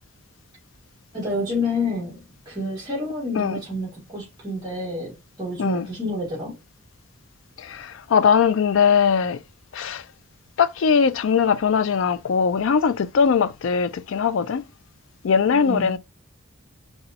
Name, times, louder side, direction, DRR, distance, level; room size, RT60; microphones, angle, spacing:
voice 1, 1.1-6.6 15.5-16.0, left 2 dB, 20° right, 1.5 m, -29 dB
voice 2, 8.1-9.4 9.8-10.0 10.6-14.6 15.2-16.0, left 6 dB, 65° left, 0.4 m, -20 dB
4.0 x 2.2 x 2.8 m
head